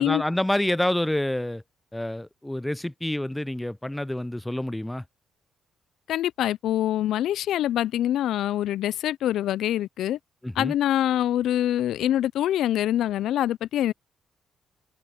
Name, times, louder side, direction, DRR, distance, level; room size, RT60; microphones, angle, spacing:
voice 1, 0.0-1.6 1.9-5.0 10.4-10.7, left 1 dB, 5° left, 0.4 m, -27 dB
voice 2, 6.1-10.2 10.6-13.9, left 12 dB, 80° left, 0.3 m, -25 dB
cardioid pair, 90°, 0 cm